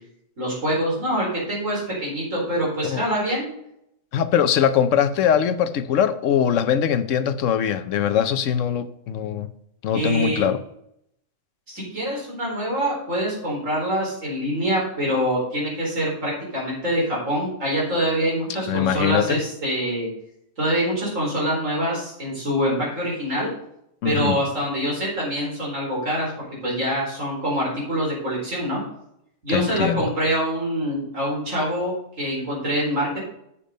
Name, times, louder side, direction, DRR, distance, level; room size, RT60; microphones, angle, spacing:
voice 1, 0.4-3.5 9.9-10.4 11.7-20.1 20.6-23.5 24.0-26.3 26.6-28.8 29.4-33.2, equal, 80° right, -4 dB, 4.9 m, -25 dB
voice 2, 4.1-9.5 9.8-10.6 18.7-19.4 24.0-24.4 29.5-30.0, left 9 dB, 75° left, 12 dB, 1.0 m, -22 dB
8.7 x 6.9 x 5.2 m, 0.76 s
omnidirectional pair, 1.3 m